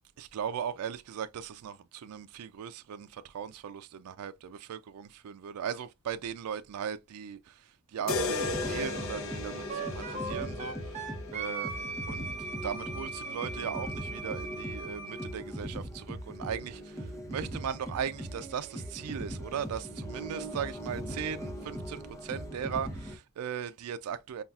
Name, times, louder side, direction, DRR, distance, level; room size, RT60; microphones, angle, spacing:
voice 1, 0.2-11.7 12.1-24.4, right 8 dB, 90° right, 0.4 m, -38 dB
sound 1, 8.0-23.2, equal, 15° left, 0.7 m, -40 dB
sound 2, 8.1-12.1, left 3 dB, 65° left, 0.7 m, -36 dB
Wind instrument woodwind instrument, 9.7-15.3, right 3 dB, 30° right, 0.8 m, -39 dB
5.4 x 2.3 x 2.3 m
head